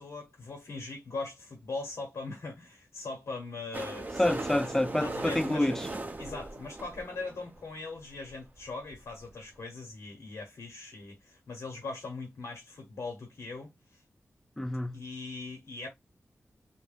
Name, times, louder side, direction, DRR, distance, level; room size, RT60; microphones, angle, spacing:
voice 1, 0.0-4.3 5.0-5.8 6.2-14.0 14.9-15.9, left 3 dB, 85° left, 0.8 m, -40 dB
sound 1, 3.7-7.6 8.3-8.4 8.6-8.7 8.8-9.0 9.3-9.4, right 2 dB, 35° right, 0.6 m, -38 dB
voice 2, 4.2-5.9 14.6-15.0, left 1 dB, 10° left, 0.3 m, -28 dB
2.3 x 2.1 x 3.2 m
wide cardioid pair, 70°, 5 cm